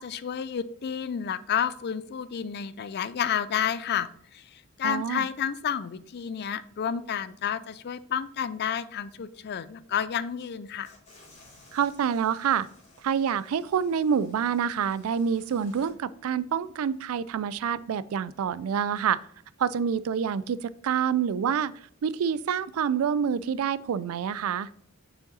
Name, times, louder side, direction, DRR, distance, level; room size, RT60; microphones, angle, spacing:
voice 1, 0.0-10.9, left 8 dB, 50° left, 15 dB, 0.4 m, -30 dB
voice 2, 4.8-5.2 11.7-12.7 13.0-19.2 19.6-21.7 22.0-24.7, right 7 dB, 80° right, 18 dB, 0.4 m, -27 dB
sound 1, 10.8-15.9, left 2 dB, 35° left, 2.5 m, -56 dB
6.5 x 5.0 x 4.0 m, 0.66 s
head